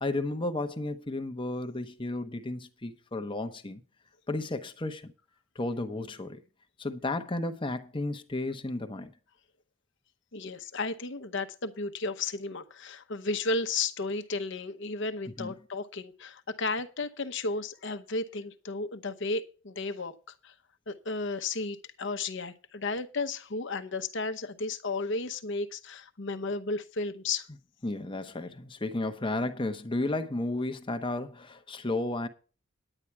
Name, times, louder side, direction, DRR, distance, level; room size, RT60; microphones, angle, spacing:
voice 1, 0.0-3.8 4.3-5.1 5.6-6.4 6.8-9.1 15.4-15.5 27.8-32.3, left 2 dB, 25° left, 0.8 m, -33 dB
voice 2, 10.3-20.1 20.4-20.5 20.9-27.5, left 3 dB, 55° left, 0.9 m, -33 dB
9.9 x 9.8 x 4.6 m
head